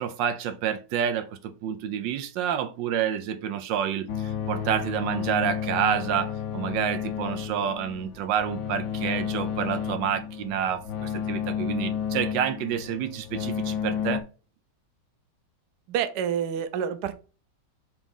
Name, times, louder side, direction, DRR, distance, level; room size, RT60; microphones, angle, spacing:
voice 1, 0.0-14.2, right 9 dB, 85° right, 1.4 m, -28 dB
sound 1, 4.1-14.2, left 8 dB, 60° left, 1.0 m, -31 dB
voice 2, 15.9-17.1, right 8 dB, 70° right, 1.1 m, -28 dB
5.1 x 3.6 x 5.2 m
omnidirectional pair, 1.9 m